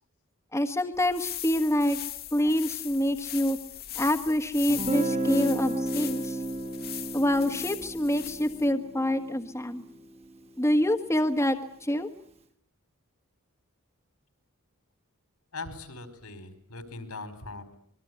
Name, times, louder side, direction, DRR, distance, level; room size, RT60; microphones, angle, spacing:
voice 1, 0.5-2.0 2.3-3.6 3.9-6.4 7.1-9.8 10.6-12.1, left 1 dB, 15° left, 5 dB, 1.5 m, -26 dB
sound 1, 0.9-8.7, left 13 dB, 45° left, 1.7 m, -39 dB
Guitar, 4.7-10.5, right 1 dB, 30° right, 1.9 m, -33 dB
voice 2, 15.5-17.8, left 3 dB, 80° left, 11 dB, 4.8 m, -40 dB
26.0 x 22.0 x 9.4 m, 0.62 s
head